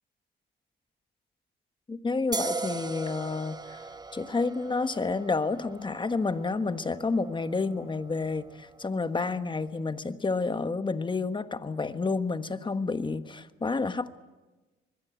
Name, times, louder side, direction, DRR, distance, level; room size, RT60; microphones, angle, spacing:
voice 1, 1.9-3.9 4.1-14.2, left 3 dB, 25° left, 11 dB, 1.4 m, -30 dB
sound 1, 2.3-9.6, right 3 dB, 20° right, 1.0 m, -40 dB
25.0 x 21.0 x 8.3 m, 1.2 s
cardioid pair, 90°, 20 cm